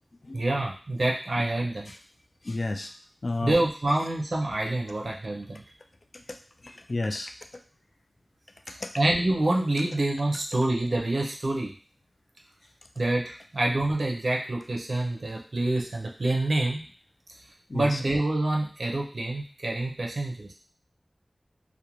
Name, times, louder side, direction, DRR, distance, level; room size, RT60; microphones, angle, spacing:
voice 1, 0.3-1.9 3.4-5.6 8.7-11.7 13.0-16.8 17.7-20.5, right 2 dB, 75° right, -1 dB, 0.5 m, -27 dB
voice 2, 2.4-2.9 3.2-3.6 6.3-6.4 6.6-7.3 8.8-8.9 17.7-18.0, left 2 dB, 55° left, 5 dB, 0.3 m, -31 dB
2.5 x 2.1 x 2.9 m, 0.41 s
wide cardioid pair, 70°, 0 cm